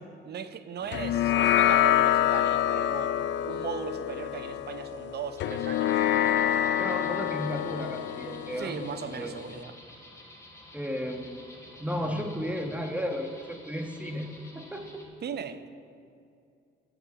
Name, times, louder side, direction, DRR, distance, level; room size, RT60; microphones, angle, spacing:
voice 1, 0.3-3.1 3.4-5.9 8.6-9.7 15.2-15.6, right 7 dB, 55° right, 11 dB, 0.8 m, -37 dB
sound 1, 0.9-9.6, left 11 dB, 65° left, 0.5 m, -27 dB
sound 2, 5.4-15.0, left 1 dB, 15° left, 2.7 m, -51 dB
voice 2, 6.8-8.8 9.1-9.3 10.7-11.5 11.8-14.3 14.5-15.0, equal, 5° right, 4 dB, 1.4 m, -34 dB
14.0 x 5.1 x 8.5 m, 2.5 s
cardioid pair, 90°, 20 cm